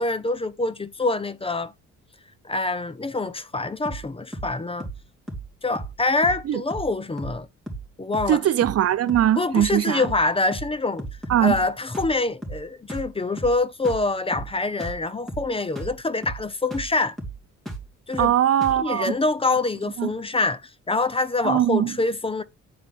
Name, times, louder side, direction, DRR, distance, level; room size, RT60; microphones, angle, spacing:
voice 1, 0.0-1.7 2.4-4.9 5.6-7.5 8.0-8.4 9.4-11.1 11.4-17.2 18.1-18.3 18.8-22.4, left 3 dB, 20° left, 0.7 m, -25 dB
sound 1, 3.8-4.1 4.3-4.5 4.8-5.0 5.3-5.5 5.7-6.0 6.2-6.4 6.7-6.9 7.2-7.4 7.7-7.9 8.1-8.4 8.6-8.8 9.1-9.3 9.6-9.8 10.0-10.3 10.5-10.7 11.0-11.7 11.9-12.2 12.4-12.6 12.9-13.1 13.4-13.6 13.8-14.1 14.3-14.5 14.8-15.0 15.3-15.5 15.7-16.0 16.2-16.4 16.7-16.9 17.2-17.4 17.7-17.9 18.1-18.3 18.6-18.8, right 2 dB, ahead, 2.9 m, -35 dB
voice 2, 8.3-10.0 11.3-11.5 18.2-19.1 20.0-20.1 21.4-21.9, right 11 dB, 55° right, 0.6 m, -20 dB
9.3 x 4.4 x 4.3 m
cardioid pair, 90°, 30 cm